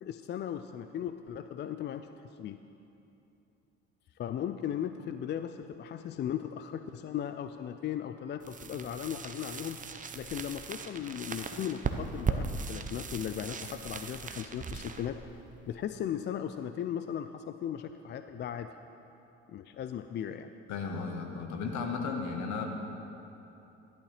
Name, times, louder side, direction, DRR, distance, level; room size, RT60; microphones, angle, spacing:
voice 1, 0.0-2.6 4.2-15.2 15.7-18.7 19.5-20.5, left 9 dB, 35° left, 9 dB, 0.4 m, -37 dB
sound 1, 8.4-16.2, right 5 dB, 25° right, 0.7 m, -38 dB
voice 2, 20.7-22.6, left 5 dB, 60° left, 3 dB, 1.4 m, -34 dB
11.5 x 11.0 x 3.3 m, 2.9 s
hypercardioid pair, 60°, 32 cm